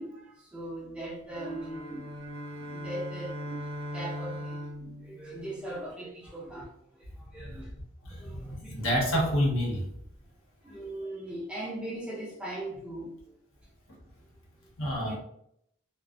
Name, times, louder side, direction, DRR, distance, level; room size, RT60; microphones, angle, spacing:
voice 1, 0.0-2.1 2.5-7.7 8.2-8.7 10.6-13.1 15.1-15.2, right 1 dB, 5° right, 0.4 m, -40 dB
sound 1, 1.2-5.9, equal, 70° right, 0.6 m, -39 dB
voice 2, 8.0-9.8 14.8-15.2, equal, 75° left, 0.8 m, -28 dB
2.3 x 2.0 x 2.6 m
head